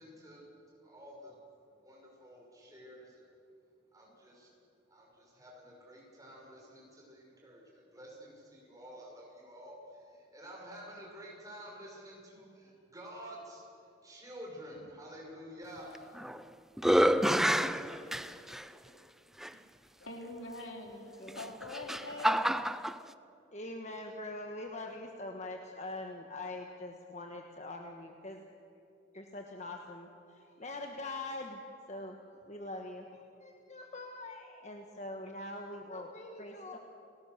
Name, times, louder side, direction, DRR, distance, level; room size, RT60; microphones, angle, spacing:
voice 1, 0.0-1.4 1.8-3.2 3.9-4.5 4.9-16.1, equal, 20° right, -2 dB, 5.8 m, -50 dB
sound 1, 15.9-16.4 16.8-18.6 19.4-19.5 21.3-23.0, equal, ahead, 0.4 m, -28 dB
voice 2, 20.0-22.8, left 1 dB, 90° left, 2 dB, 3.5 m, -44 dB
voice 3, 23.5-28.4 29.1-31.6 31.9-32.2 32.5-36.8, left 2 dB, 35° left, 3 dB, 1.4 m, -43 dB
30.0 x 19.5 x 6.7 m, 2.8 s
head